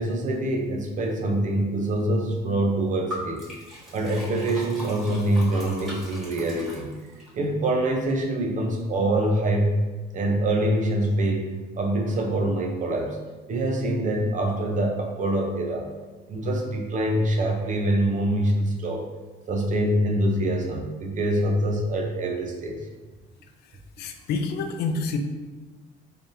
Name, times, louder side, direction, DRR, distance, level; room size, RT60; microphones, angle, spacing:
voice 1, 0.0-3.5 3.9-9.8 10.1-13.2 13.5-15.9 16.3-19.1 19.5-22.9, right 1 dB, 50° right, 2 dB, 0.7 m, -25 dB
Liquid, 3.1-7.3, left 1 dB, ahead, 1.4 m, -39 dB
voice 2, 23.7-25.2, left 4 dB, 75° left, 6 dB, 0.5 m, -29 dB
4.0 x 3.3 x 2.7 m, 1.2 s
cardioid pair, 110°, 17 cm